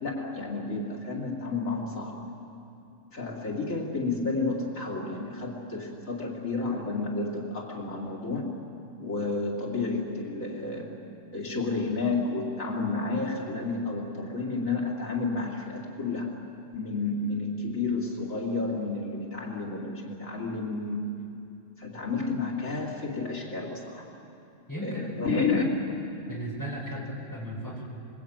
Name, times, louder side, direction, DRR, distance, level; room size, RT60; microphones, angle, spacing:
voice 1, 0.0-2.2 3.1-8.5 9.0-11.0 11.3-16.3 16.7-21.1 21.8-24.1 24.8-25.6 26.9-27.0, left 3 dB, 90° left, -2 dB, 3.5 m, -31 dB
voice 2, 24.7-25.2 26.3-27.8, equal, 15° left, -5 dB, 7.6 m, -35 dB
26.5 x 22.5 x 9.0 m, 2.8 s
omnidirectional pair, 1.3 m